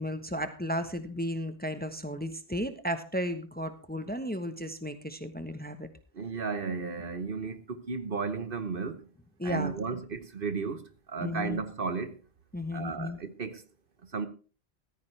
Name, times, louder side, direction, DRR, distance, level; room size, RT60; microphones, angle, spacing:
voice 1, 0.0-5.9 9.4-9.8 11.2-11.6 12.5-13.2, equal, 10° left, 1.0 m, -34 dB
voice 2, 6.1-9.1 9.4-12.2 12.7-13.6 14.1-14.3, right 4 dB, 55° right, 1.3 m, -34 dB
14.5 x 14.0 x 3.3 m
omnidirectional pair, 1.1 m